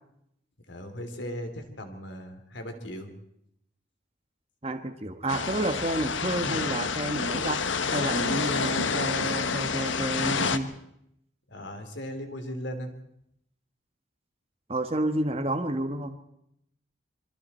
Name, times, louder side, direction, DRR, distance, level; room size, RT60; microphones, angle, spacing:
voice 1, 0.7-3.1 11.5-12.9, equal, 70° left, 6 dB, 3.3 m, -37 dB
voice 2, 4.6-10.7 14.7-16.2, right 1 dB, 30° right, 6 dB, 1.4 m, -30 dB
sound 1, 5.3-10.6, left 5 dB, 85° left, 1.2 m, -28 dB
26.0 x 23.5 x 4.4 m, 0.75 s
head